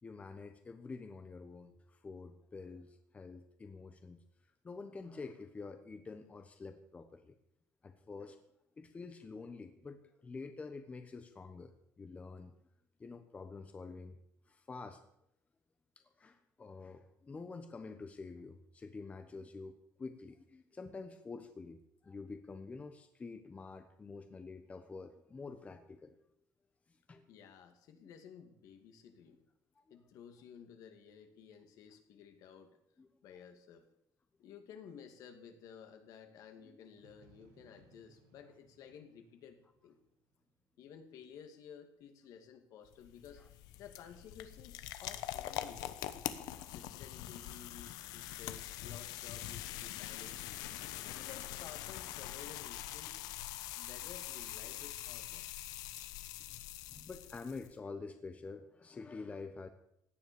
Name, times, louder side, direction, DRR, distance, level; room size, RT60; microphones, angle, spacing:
voice 1, 0.0-4.2 4.6-7.4 7.8-8.4 8.8-12.5 13.0-14.2 14.5-15.0 16.2-21.8 22.0-26.1 27.1-27.2 29.8-29.9 33.0-33.1 36.6-36.8 43.4-43.5 46.5-46.7 56.9-59.7, left 4 dB, 20° left, 8 dB, 1.1 m, -48 dB
voice 2, 27.3-29.4 29.9-32.8 33.2-33.9 34.4-40.0 40.8-43.4 43.8-45.8 46.7-50.4 51.0-53.2 53.8-55.5, left 7 dB, 65° left, 6 dB, 2.4 m, -54 dB
sound 1, 37.0-40.9, right 6 dB, 85° right, 2.1 m, -67 dB
sound 2, 42.9-57.7, left 14 dB, 90° left, 1.1 m, -44 dB
17.0 x 10.5 x 7.0 m, 0.76 s
cardioid pair, 135°, 6 cm